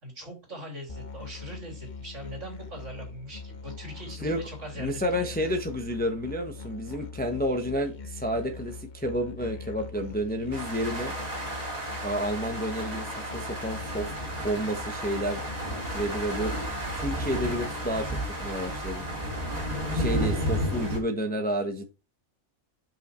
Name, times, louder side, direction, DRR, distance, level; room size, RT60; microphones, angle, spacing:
voice 1, 0.0-5.5, equal, 60° right, 0 dB, 3.5 m, -41 dB
Musical instrument, 0.9-17.9, left 4 dB, 40° left, 1.0 m, -42 dB
voice 2, 4.8-11.1 12.0-14.1 14.4-15.4 15.9-16.5 16.9-19.0 19.9-21.8, equal, 10° left, 5 dB, 0.9 m, -30 dB
sound 1, 10.5-21.0, right 1 dB, 30° right, 2.6 m, -32 dB
6.0 x 5.5 x 4.3 m, 0.28 s
omnidirectional pair, 1.4 m